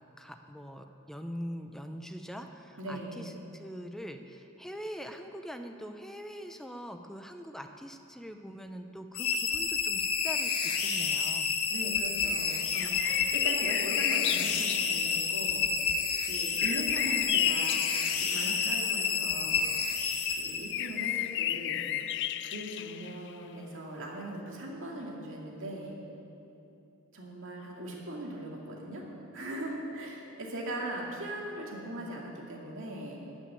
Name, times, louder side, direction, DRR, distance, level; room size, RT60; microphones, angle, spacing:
voice 1, 0.2-11.6, equal, ahead, 6 dB, 0.6 m, -43 dB
voice 2, 2.8-3.2 11.7-15.7 16.2-17.8 18.2-19.7 20.3-21.8 22.4-26.0 27.1-29.0 29.3-33.2, right 1 dB, 60° right, -2 dB, 2.3 m, -39 dB
sound 1, 9.1-21.0, left 5 dB, 80° left, 1.2 m, -30 dB
sound 2, 12.7-15.2 16.6-18.5 20.7-23.3, left 13 dB, 55° left, 0.3 m, -33 dB
13.5 x 6.2 x 9.7 m, 2.9 s
head